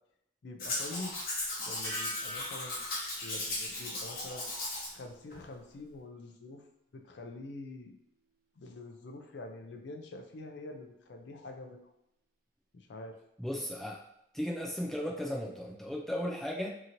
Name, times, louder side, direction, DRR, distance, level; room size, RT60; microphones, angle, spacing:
voice 1, 0.4-1.2 1.6-2.9 3.2-4.5 4.9-6.6 6.9-8.0 8.6-11.9 12.7-13.2, left 2 dB, 75° left, 4 dB, 0.4 m, -45 dB
Domestic sounds home sounds, 0.6-4.9 5.3-5.4, left 2 dB, 50° left, 0.9 m, -37 dB
sound 1, 1.8-4.7 5.0-5.5, equal, 50° right, 0.5 m, -46 dB
voice 2, 13.4-14.0 14.3-16.7, equal, ahead, -2 dB, 0.3 m, -35 dB
2.8 x 2.8 x 2.5 m, 0.80 s
head